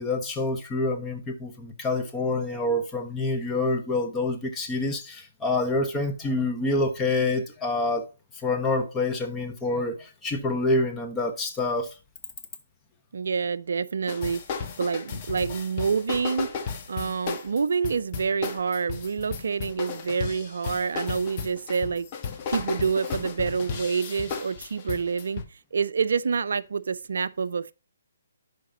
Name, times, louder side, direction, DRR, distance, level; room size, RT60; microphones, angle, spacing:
voice 1, 0.0-8.1 8.4-11.9, left 2 dB, 15° left, 1.1 m, -27 dB
voice 2, 13.1-22.1 22.5-25.4 25.7-27.7, right 5 dB, 65° right, 0.4 m, -27 dB
sound 1, 14.1-25.4, left 5 dB, 30° left, 1.2 m, -34 dB
11.0 x 5.0 x 2.8 m
figure-of-eight pair, 140°, 0 cm